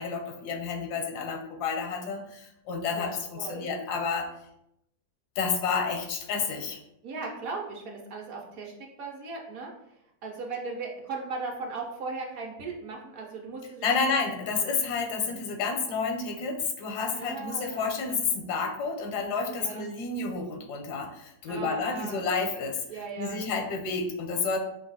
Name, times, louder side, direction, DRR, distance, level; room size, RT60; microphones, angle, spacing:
voice 1, 0.0-4.3 5.4-6.8 13.8-24.6, left 4 dB, 85° left, 3 dB, 1.3 m, -30 dB
voice 2, 2.9-3.6 7.0-8.7 9.0-9.7 10.2-13.9 17.0-17.9 19.5-19.8 21.5-23.4, right 4 dB, 65° right, -1 dB, 1.3 m, -38 dB
5.1 x 2.4 x 4.0 m, 0.80 s
omnidirectional pair, 1.7 m